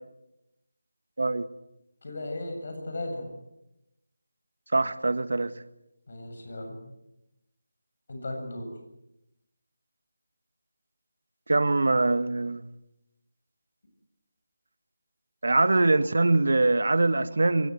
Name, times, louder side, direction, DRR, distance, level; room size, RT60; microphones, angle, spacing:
voice 1, 2.0-3.3 6.1-6.8 8.1-8.7, left 1 dB, 55° left, 4 dB, 7.9 m, -36 dB
voice 2, 4.7-5.5 11.5-12.6 15.4-17.7, right 2 dB, 70° right, 13 dB, 1.5 m, -23 dB
22.5 x 18.5 x 8.0 m, 0.89 s
figure-of-eight pair, 170°, 0 cm